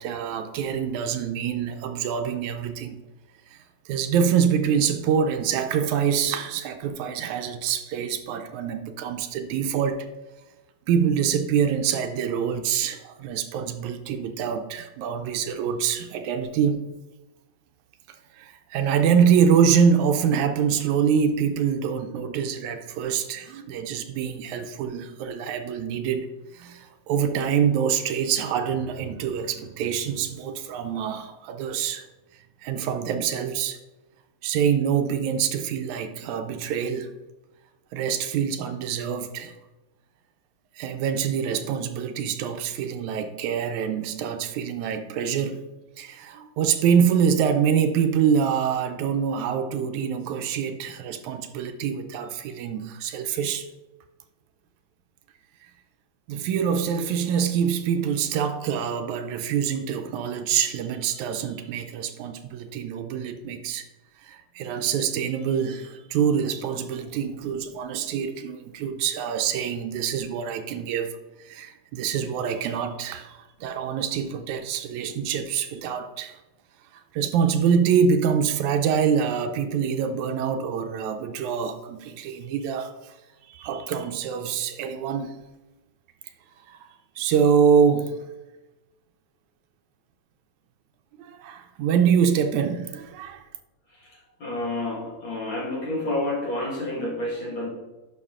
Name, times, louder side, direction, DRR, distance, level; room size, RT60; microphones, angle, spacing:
voice 1, 0.0-3.0 3.5-3.6 3.9-10.1 10.9-16.9 18.4-26.3 26.5-32.1 32.6-33.8 34.4-37.1 37.9-39.5 40.8-45.7 46.0-53.7 56.3-63.9 64.2-71.1 71.5-76.4 77.1-83.1 83.5-85.4 86.7-86.8 87.2-88.2 91.2-93.4, right 7 dB, 80° right, 2.0 m, -25 dB
voice 2, 93.9-97.7, left 1 dB, 45° left, 2.3 m, -29 dB
11.0 x 5.7 x 3.6 m
omnidirectional pair, 3.4 m